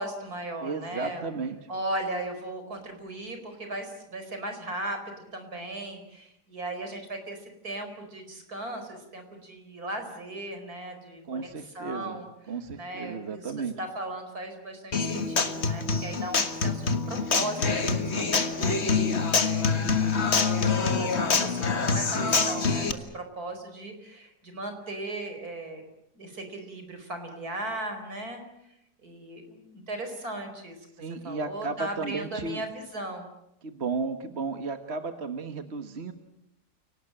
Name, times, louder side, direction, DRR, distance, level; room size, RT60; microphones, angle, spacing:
voice 1, 0.0-1.3 1.7-11.5 11.7-12.3 12.8-13.5 13.8-18.8 19.3-20.7 21.0-25.8 26.1-28.4 29.0-30.8 31.2-33.3, right 1 dB, 65° right, 6 dB, 5.3 m, -37 dB
voice 2, 0.6-1.6 11.2-13.7 31.0-32.6 33.6-36.1, right 4 dB, 45° right, 8 dB, 1.6 m, -34 dB
Human voice / Acoustic guitar, 14.9-22.9, left 4 dB, 45° left, 1.8 m, -25 dB
29.5 x 18.5 x 8.9 m, 0.83 s
omnidirectional pair, 1.7 m